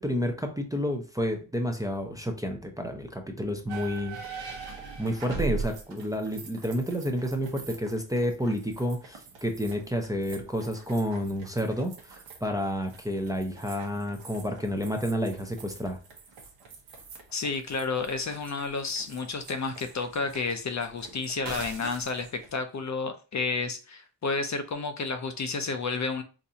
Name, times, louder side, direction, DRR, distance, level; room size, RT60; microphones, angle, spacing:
voice 1, 0.0-4.2 5.0-16.0, equal, 10° right, 0.5 m, -30 dB
sound 1, 3.7-22.5, right 5 dB, 90° right, 0.9 m, -42 dB
voice 2, 17.3-26.2, left 4 dB, 45° left, 0.5 m, -31 dB
4.0 x 2.6 x 2.7 m
wide cardioid pair, 100°, 43 cm